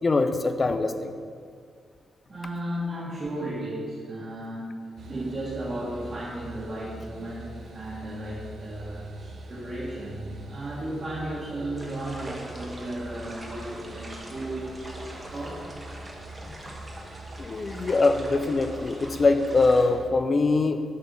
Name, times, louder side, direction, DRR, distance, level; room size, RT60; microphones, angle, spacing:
voice 1, 0.0-1.1 16.4-16.7 17.4-20.8, left 3 dB, 45° left, 9 dB, 0.5 m, -23 dB
voice 2, 2.3-4.8 5.1-15.7, right 1 dB, 45° right, -8 dB, 1.7 m, -35 dB
sound 1, 5.0-20.0, right 2 dB, 65° right, 0.8 m, -44 dB
sound 2, 11.8-19.9, right 1 dB, 30° right, 1.3 m, -43 dB
6.5 x 4.1 x 5.5 m, 2.1 s
supercardioid pair, 45°, 0 cm